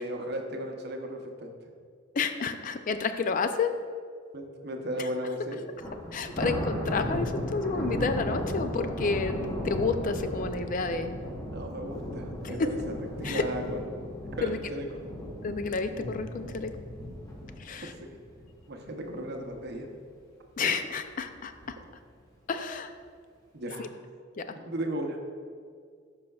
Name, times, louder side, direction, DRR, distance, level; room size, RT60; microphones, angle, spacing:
voice 1, 0.0-1.5 4.3-5.7 11.5-14.1 14.4-14.9 18.7-19.9 23.5-23.9 24.5-25.2, equal, 55° right, 3 dB, 0.8 m, -35 dB
voice 2, 2.1-3.8 5.0-5.1 6.1-9.4 9.6-11.1 12.4-12.7 13.2-13.5 14.4-14.6 15.4-16.7 17.6-17.9 20.6-21.8 22.5-22.9 23.8-23.9 24.4-24.5, left 4 dB, 40° left, 9 dB, 0.4 m, -30 dB
Thunder, 5.8-19.1 19.4-19.7 20.1-20.2 21.1-21.7, equal, 15° left, 1.0 m, -36 dB
11.5 x 5.5 x 2.3 m, 2.1 s
head